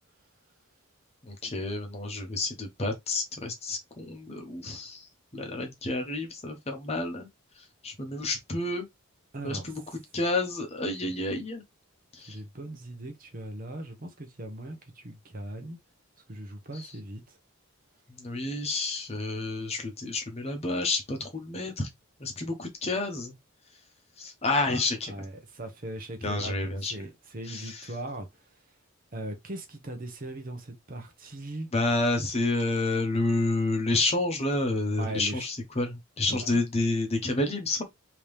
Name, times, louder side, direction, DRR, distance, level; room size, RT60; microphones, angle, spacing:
voice 1, 1.2-7.3 7.6-8.9 9.4-9.8 10.1-11.6 12.1-12.4 16.7-16.9 18.1-21.9 22.2-23.3 24.2-25.1 26.2-26.9 27.5-27.9 31.7-37.8, left 2 dB, 30° left, 0.9 m, -29 dB
voice 2, 9.3-9.7 11.0-11.2 12.3-15.8 16.3-17.4 24.7-24.8 25.1-28.4 29.1-31.7 35.0-35.5 36.3-36.6, right 1 dB, 40° right, 0.9 m, -39 dB
3.5 x 2.9 x 3.2 m
head